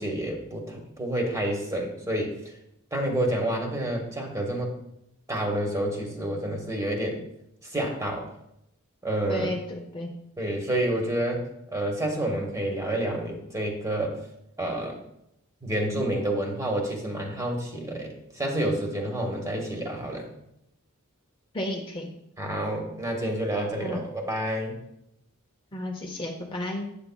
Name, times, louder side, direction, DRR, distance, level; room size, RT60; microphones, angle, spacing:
voice 1, 0.0-2.6 2.9-4.8 5.3-7.2 7.6-8.3 9.0-9.5 10.4-14.2 14.6-15.0 15.6-20.3 22.4-24.8, right 1 dB, 15° right, 2 dB, 1.1 m, -29 dB
voice 2, 9.3-10.1 21.5-22.1 23.8-24.0 25.7-26.9, left 1 dB, 25° left, 1 dB, 0.6 m, -32 dB
8.2 x 6.8 x 2.2 m, 0.80 s
head